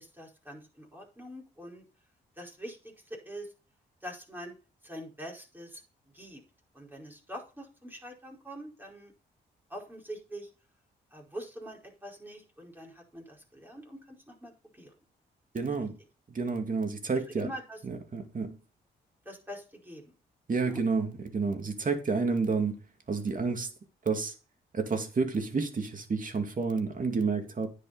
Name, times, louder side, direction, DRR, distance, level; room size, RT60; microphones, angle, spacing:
voice 1, 0.0-1.9 2.4-3.5 4.0-4.5 4.8-5.8 6.1-6.4 6.7-9.1 9.7-10.5 11.1-14.9 17.3-17.8 19.2-20.1 20.6-20.8, equal, 10° right, 4.9 m, -44 dB
voice 2, 15.5-16.0 16.3-17.5 17.8-18.5 20.5-22.8 23.1-23.7 24.1-24.3 24.7-27.7, right 4 dB, 45° right, 2.5 m, -30 dB
9.9 x 8.1 x 4.2 m
supercardioid pair, 55°, 20 cm